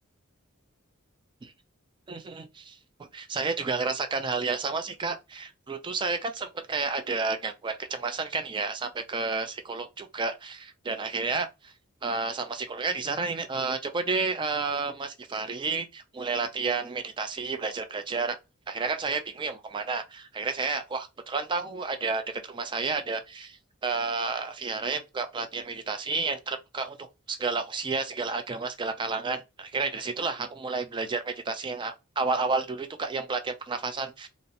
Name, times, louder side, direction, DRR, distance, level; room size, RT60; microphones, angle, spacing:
voice 1, 2.1-2.8 3.1-11.7 12.0-18.4 18.7-23.6 23.8-34.3, right 4 dB, 20° right, 0.4 m, -31 dB
2.7 x 2.0 x 2.6 m
head